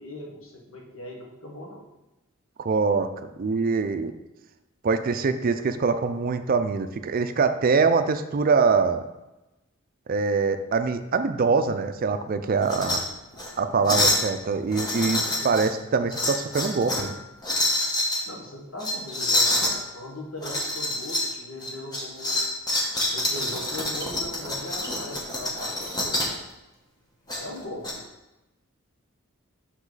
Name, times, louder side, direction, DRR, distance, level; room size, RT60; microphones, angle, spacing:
voice 1, 0.0-1.8 18.3-22.4 23.1-26.3 27.4-28.0, left 1 dB, 80° left, -1 dB, 1.4 m, -39 dB
voice 2, 2.6-4.1 4.8-9.1 10.1-13.0 13.6-17.1, right 4 dB, 45° right, 10 dB, 0.4 m, -24 dB
sound 1, 12.6-13.0 13.3-13.5 13.8-14.3 14.7-15.7 16.1-17.1 17.4-18.2 18.8-19.7 20.4-21.3 21.6-26.4 27.3-27.9, left 1 dB, 20° left, 1.1 m, -26 dB
6.2 x 5.0 x 4.0 m, 0.98 s
head